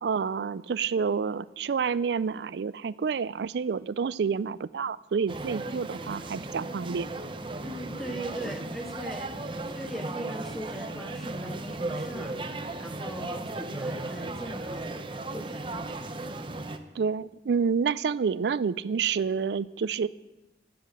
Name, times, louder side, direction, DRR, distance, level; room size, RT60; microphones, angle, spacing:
voice 1, 0.0-7.1 16.9-20.1, right 6 dB, 70° right, 18 dB, 0.4 m, -28 dB
sound 1, 5.3-16.8, right 2 dB, 30° right, 0.7 m, -36 dB
voice 2, 7.6-12.4 12.8-15.9, right 1 dB, ahead, 5 dB, 0.9 m, -40 dB
10.5 x 7.6 x 8.1 m, 1.0 s
head